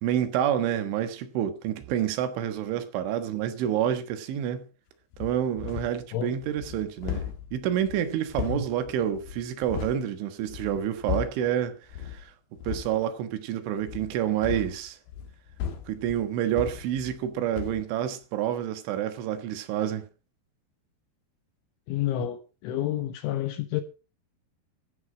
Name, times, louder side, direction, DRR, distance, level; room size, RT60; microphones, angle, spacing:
voice 1, 0.0-4.7 5.2-12.3 12.7-15.0 15.9-20.1, right 10 dB, 75° right, 3.7 m, -28 dB
sound 1, 5.1-6.1 6.4-10.0 10.4-11.5 11.9-12.2 12.6-13.0 13.8-17.3 17.5-17.9, left 9 dB, 60° left, 3.3 m, -36 dB
voice 2, 21.9-23.8, left 11 dB, 75° left, 3.4 m, -29 dB
15.0 x 9.3 x 4.9 m
omnidirectional pair, 5.7 m